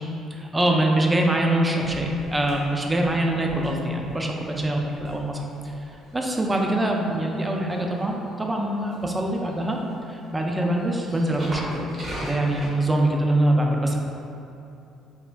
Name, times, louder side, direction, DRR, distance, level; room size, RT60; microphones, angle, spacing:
voice 1, 0.3-5.5 6.1-9.8 10.1-11.8 12.2-14.0, right 1 dB, 15° right, 1 dB, 0.4 m, -24 dB
sound 1, 1.8-12.7, right 1 dB, 40° right, 0.7 m, -41 dB
3.3 x 2.1 x 2.4 m, 2.8 s
supercardioid pair, 75°, 0 cm